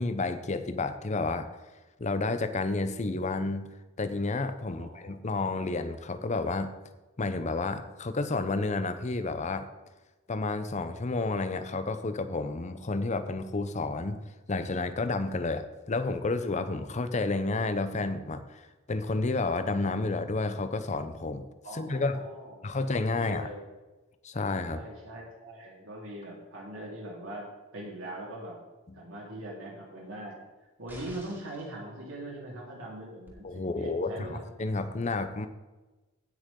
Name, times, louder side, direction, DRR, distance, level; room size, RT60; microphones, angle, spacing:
voice 1, 0.0-1.5 2.0-3.7 4.0-6.7 7.2-9.7 10.3-14.2 14.5-18.6 18.9-21.5 21.7-22.2 22.6-23.5 24.2-24.8 33.4-35.5, left 3 dB, 35° left, 10 dB, 0.7 m, -30 dB
voice 2, 4.7-5.1 21.6-22.6 23.1-23.6 24.7-27.5 27.7-28.6 28.9-30.4 30.8-34.4, right 1 dB, 85° right, -4 dB, 3.7 m, -41 dB
sound 1, 30.9-31.7 33.3-33.4, equal, 10° right, 2.5 m, -49 dB
16.5 x 6.4 x 3.8 m, 1.1 s
head